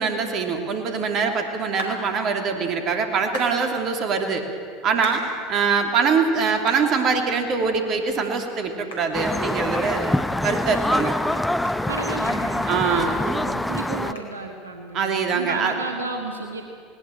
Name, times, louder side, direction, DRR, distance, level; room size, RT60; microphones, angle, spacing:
voice 1, 0.0-4.4 4.8-5.2 5.5-10.1 10.4-11.1 12.7-13.1 14.9-15.7, right 5 dB, 45° right, 5 dB, 3.0 m, -23 dB
sound 1, 1.8-2.0 3.3-3.5 5.0-5.2 5.8-5.9 6.7-6.8 7.3-7.4 8.1-8.2 8.5-8.6 8.9-9.1 9.3-9.5 9.8-10.2 10.6-10.7 11.0-13.4 13.6-13.7 14.2-14.3, left 2 dB, 75° left, 4.2 m, -36 dB
sound 2, 9.1-14.1, left 1 dB, 5° left, 0.8 m, -25 dB
voice 2, 11.9-16.6, right 3 dB, 85° right, 4 dB, 1.5 m, -33 dB
19.5 x 18.5 x 9.2 m, 2.3 s
hypercardioid pair, 75°, 0 cm